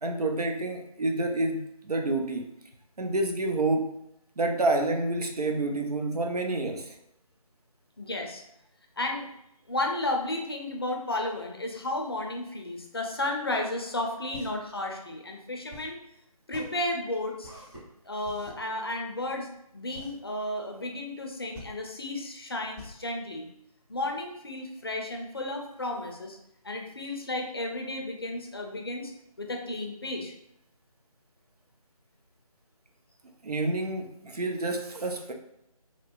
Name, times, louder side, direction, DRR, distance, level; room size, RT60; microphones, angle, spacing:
voice 1, 0.0-2.5 3.0-3.9 4.4-7.0 33.4-35.3, right 2 dB, 85° right, 3 dB, 0.7 m, -28 dB
voice 2, 8.0-8.4 9.0-9.3 9.7-16.0 16.5-17.5 18.0-19.5 19.7-23.5 23.9-26.4 26.6-29.1 29.4-30.3, left 2 dB, 40° left, 2 dB, 0.5 m, -33 dB
sound 1, 14.0-24.2, equal, 5° right, 0.9 m, -48 dB
3.0 x 2.9 x 2.5 m, 0.78 s
figure-of-eight pair, 165°, 19 cm